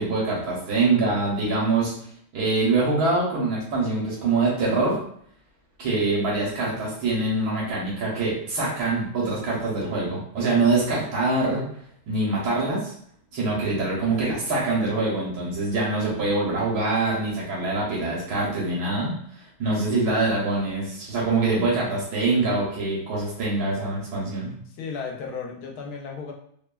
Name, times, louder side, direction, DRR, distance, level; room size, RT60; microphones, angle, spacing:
voice 1, 0.0-1.9 2.3-5.0 5.8-11.6 12.1-12.9 13.3-19.1 19.6-24.5, right 3 dB, 80° right, -5 dB, 1.3 m, -24 dB
voice 2, 24.7-26.3, left 5 dB, 80° left, 1 dB, 1.1 m, -35 dB
3.0 x 2.1 x 2.2 m, 0.65 s
omnidirectional pair, 1.6 m